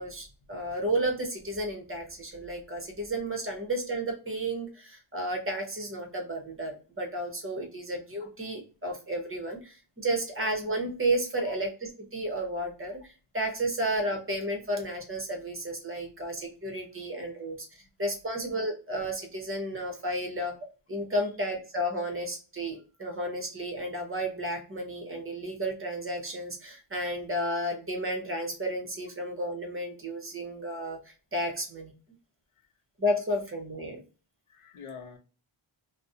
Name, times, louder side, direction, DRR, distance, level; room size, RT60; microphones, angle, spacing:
voice 1, 0.0-17.6 18.0-20.5 20.9-31.9 33.0-34.0, right 1 dB, 25° right, 2 dB, 0.7 m, -32 dB
voice 2, 34.5-35.2, left 5 dB, 80° left, 6 dB, 0.6 m, -46 dB
2.3 x 2.0 x 2.6 m, 0.35 s
wide cardioid pair, 120°, 49 cm